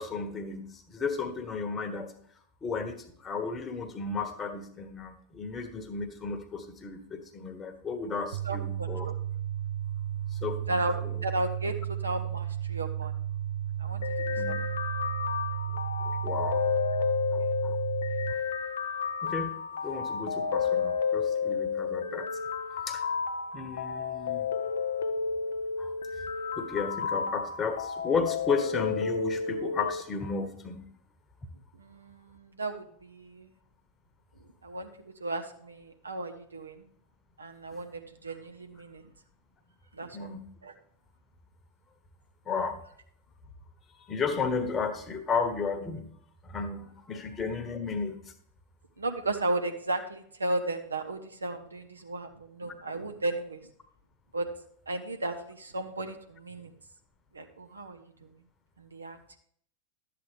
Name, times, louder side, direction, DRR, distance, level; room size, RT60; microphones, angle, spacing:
voice 1, 0.0-2.1 2.6-9.1 10.3-11.2 14.3-14.6 16.0-17.8 19.2-19.5 19.8-22.3 22.9-23.1 23.5-24.5 25.8-25.9 26.6-30.8 40.1-40.4 42.5-42.8 44.1-46.1 46.4-48.3, left 5 dB, 20° left, 7 dB, 1.1 m, -34 dB
sound 1, 8.3-18.3, right 11 dB, 60° right, 0.5 m, -34 dB
voice 2, 8.4-9.1 10.7-13.1 13.8-14.1 14.5-14.6 31.8-33.5 34.6-34.9 35.2-36.9 37.4-39.0 39.9-40.3 40.6-40.7 49.0-53.6 54.3-54.5 54.9-56.7 57.3-58.0 58.8-59.4, right 2 dB, 75° right, 5 dB, 0.9 m, -34 dB
sound 2, 14.0-30.0, left 6 dB, 65° left, 0.6 m, -31 dB
11.5 x 7.8 x 3.3 m, 0.64 s
figure-of-eight pair, 90°, 0 cm